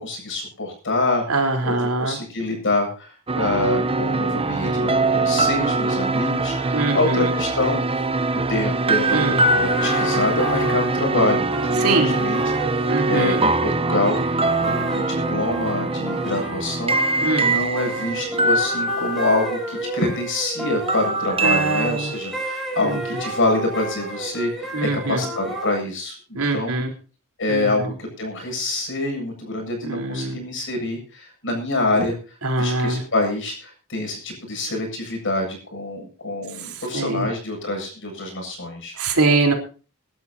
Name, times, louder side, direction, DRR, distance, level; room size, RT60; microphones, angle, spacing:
voice 1, 0.0-7.8 8.5-12.4 12.7-26.7 27.4-32.1 32.6-39.0, left 2 dB, 55° left, 3 dB, 7.8 m, -26 dB
voice 2, 1.3-2.2 6.7-7.3 9.1-9.5 11.8-12.2 12.9-13.4 17.2-17.5 21.4-22.1 22.8-23.0 24.7-25.2 26.3-26.9 27.5-27.9 29.8-30.4 31.9-32.0 32.4-33.0 36.5-37.3 39.0-39.5, right 3 dB, 70° right, 2 dB, 4.1 m, -23 dB
sound 1, 3.3-19.9 20.9-22.5, right 2 dB, 25° right, 0.9 m, -23 dB
sound 2, 9.0-25.7, right 1 dB, ahead, 6.8 m, -32 dB
23.5 x 12.0 x 2.9 m, 0.37 s
head